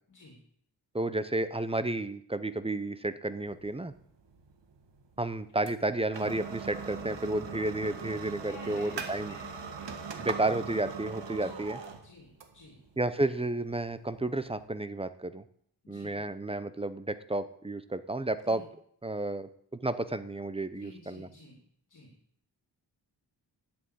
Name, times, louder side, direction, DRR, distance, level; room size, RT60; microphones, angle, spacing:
voice 1, 0.9-3.9 5.2-9.4 10.2-11.8 13.0-15.4 15.9-18.6 19.0-19.5 19.8-21.3, right 2 dB, 15° right, 12 dB, 0.7 m, -32 dB
sound 1, 3.5-14.7, right 5 dB, 90° right, 1.8 m, -41 dB
voice 2, 8.5-10.1 11.4-11.6 12.0-12.8 15.8-16.2 18.5-18.7 20.8-21.6 21.9-22.1, left 3 dB, 45° left, -1 dB, 3.0 m, -51 dB
11.5 x 8.8 x 8.5 m, 0.65 s
wide cardioid pair, 165°, 41 cm